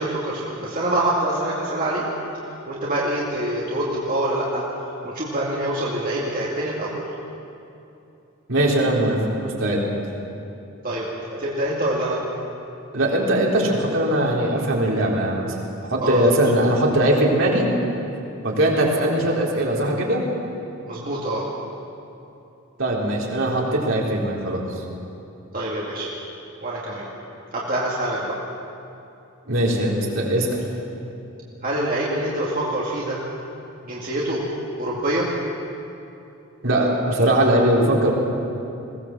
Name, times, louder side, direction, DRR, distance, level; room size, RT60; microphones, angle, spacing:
voice 1, 0.0-2.1 2.7-4.6 5.0-7.0 10.8-11.1 11.4-12.2 16.0-16.2 20.9-21.4 25.5-26.1 26.6-27.1 27.5-28.3 31.6-33.2 33.8-34.4 34.8-35.3, right 1 dB, 40° right, -6 dB, 2.4 m, -25 dB
voice 2, 8.5-9.8 12.9-15.5 15.9-17.7 18.4-20.2 22.8-24.6 29.5-30.6 36.6-38.1, right 1 dB, 65° right, -3 dB, 3.8 m, -20 dB
21.5 x 17.5 x 7.5 m, 2.8 s
head